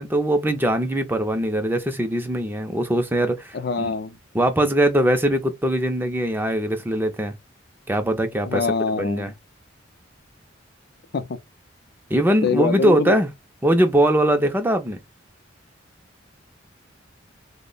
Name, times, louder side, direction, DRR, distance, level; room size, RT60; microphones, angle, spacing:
voice 1, 0.0-3.9 4.3-7.3 7.9-8.7 9.0-9.3 12.1-13.3 13.6-15.0, right 1 dB, 10° right, 0.5 m, -21 dB
voice 2, 3.5-4.1 8.5-9.3 11.1-11.4 12.4-13.2, left 4 dB, 60° left, 0.4 m, -24 dB
3.0 x 2.1 x 3.8 m
head